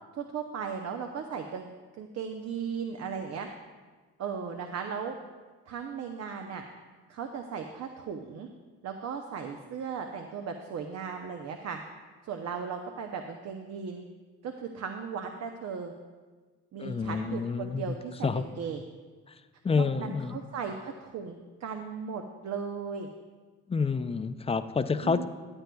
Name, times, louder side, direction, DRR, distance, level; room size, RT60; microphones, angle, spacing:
voice 1, 0.1-1.7 2.0-3.5 4.2-5.2 5.7-6.6 7.1-8.5 8.8-11.8 12.2-14.0 14.4-15.9 16.7-18.8 19.7-23.1 25.0-25.2, right 6 dB, 60° right, 5 dB, 0.7 m, -37 dB
voice 2, 16.8-18.0 18.2-18.5 19.3-19.4 19.6-20.4 23.7-25.2, left 5 dB, 20° left, 11 dB, 0.4 m, -29 dB
14.5 x 9.0 x 2.3 m, 1.4 s
cardioid pair, 90°, 30 cm